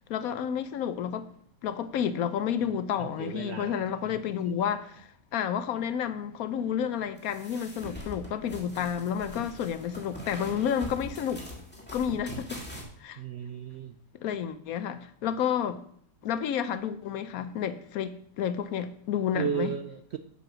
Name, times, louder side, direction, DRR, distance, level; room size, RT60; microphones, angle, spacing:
voice 1, 0.1-1.3 1.6-11.4 11.9-12.6 13.0-13.2 14.2-15.8 16.2-19.7, left 8 dB, 70° left, 1.0 m, -30 dB
voice 2, 3.0-4.2 4.5-4.8 13.2-14.0 19.3-20.2, right 7 dB, 70° right, 0.6 m, -35 dB
sound 1, 7.2-12.8, equal, 5° left, 2.1 m, -42 dB
7.7 x 6.6 x 6.1 m
omnidirectional pair, 1.7 m